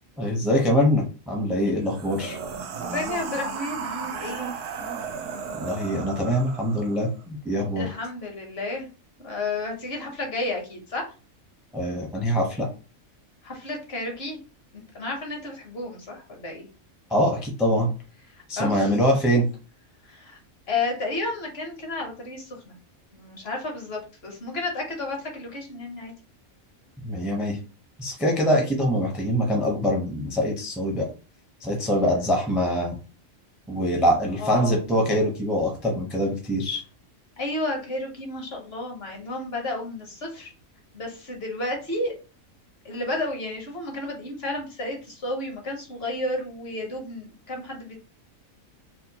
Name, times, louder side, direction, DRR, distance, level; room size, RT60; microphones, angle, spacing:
voice 1, 0.2-2.4 5.5-7.9 11.7-12.7 17.1-17.9 18.5-19.5 27.0-27.6 28.0-31.1 31.6-33.0 33.7-36.8, equal, ahead, 0 dB, 0.5 m, -24 dB
sound 1, 1.8-7.1, right 5 dB, 70° right, 0.9 m, -34 dB
voice 2, 2.7-4.5 7.8-8.9 9.2-11.1 13.4-14.4 14.7-16.7 18.6-19.0 20.0-20.4 20.7-22.7 23.1-26.1 34.4-34.8 37.4-40.5 40.9-42.1 42.8-48.0, left 2 dB, 50° left, 1 dB, 1.1 m, -32 dB
4.3 x 2.2 x 2.8 m, 0.34 s
omnidirectional pair, 1.4 m